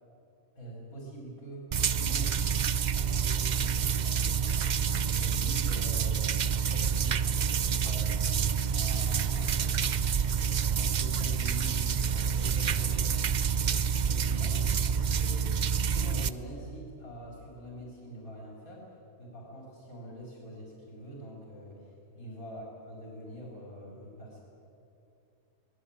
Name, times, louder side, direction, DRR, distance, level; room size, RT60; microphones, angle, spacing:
voice 1, 0.6-1.7 1.9-2.6 2.9-4.6 5.1-8.4 8.7-9.5 10.3-14.7 15.0-18.9 19.2-24.4, equal, 85° left, -2 dB, 4.6 m, -45 dB
sound 1, 1.7-16.3, right 7 dB, 50° right, 0.5 m, -28 dB
voice 2, 9.1-10.2 22.1-22.5, left 2 dB, 40° left, -4 dB, 7.8 m, -51 dB
24.5 x 19.5 x 8.7 m, 2.7 s
omnidirectional pair, 1.5 m